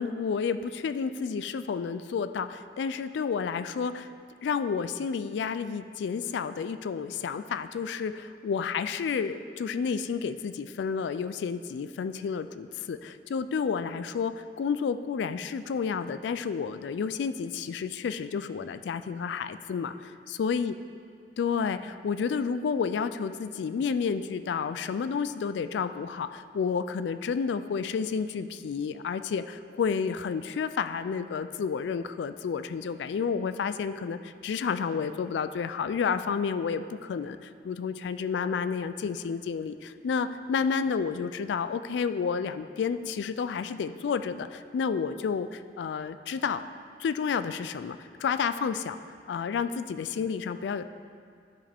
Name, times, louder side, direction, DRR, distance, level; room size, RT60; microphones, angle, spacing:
voice 1, 0.0-4.1 4.4-20.7 21.4-46.6 47.0-49.0 49.3-50.8, left 6 dB, 70° left, 12 dB, 0.3 m, -30 dB
12.0 x 5.0 x 3.5 m, 2.2 s
head